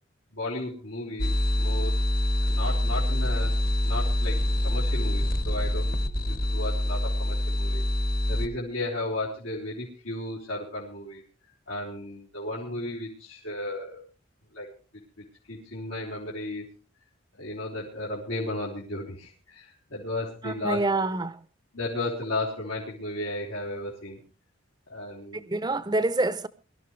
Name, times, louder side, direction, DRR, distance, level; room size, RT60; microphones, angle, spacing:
voice 1, 0.3-1.3 1.5-2.0 2.4-3.5 3.8-5.9 6.3-7.8 8.3-11.2 11.7-14.0 14.5-14.7 15.2-16.7 17.4-20.8 21.7-24.2 24.9-25.4, left 1 dB, 90° left, 4.0 m, -34 dB
sound 1, 1.2-8.5, left 1 dB, 45° left, 1.3 m, -25 dB
voice 2, 20.4-21.5 25.3-26.5, right 2 dB, 20° right, 0.6 m, -27 dB
23.0 x 12.5 x 3.2 m
head